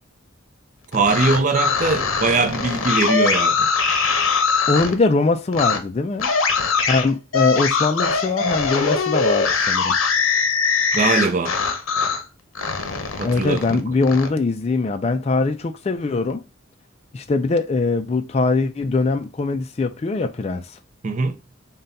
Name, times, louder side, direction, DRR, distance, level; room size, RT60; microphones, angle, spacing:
sound 1, 0.9-4.9 5.5-5.8 6.2-12.2 12.6-14.3, left 5 dB, 80° left, 0.7 m, -21 dB
voice 1, 0.9-3.7 10.9-11.6 13.2-13.8 21.0-21.4, right 4 dB, 40° right, 0.4 m, -21 dB
voice 2, 4.7-6.3 6.9-9.9 13.2-16.4 17.1-20.8, left 3 dB, 30° left, 0.3 m, -22 dB
3.7 x 2.2 x 4.0 m
head